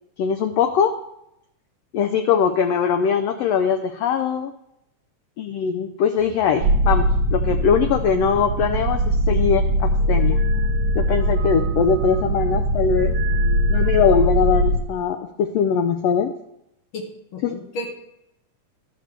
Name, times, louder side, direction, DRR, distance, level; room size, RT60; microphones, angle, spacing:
voice 1, 0.2-0.9 1.9-4.5 5.4-10.4 10.9-13.1 13.7-16.3 17.4-17.6, left 7 dB, 90° left, 6 dB, 1.4 m, -21 dB
sound 1, 6.6-14.8, equal, 60° right, 1.6 m, -21 dB
voice 2, 16.9-18.0, left 1 dB, 45° left, 0 dB, 2.1 m, -33 dB
12.5 x 4.7 x 6.7 m, 0.80 s
omnidirectional pair, 3.6 m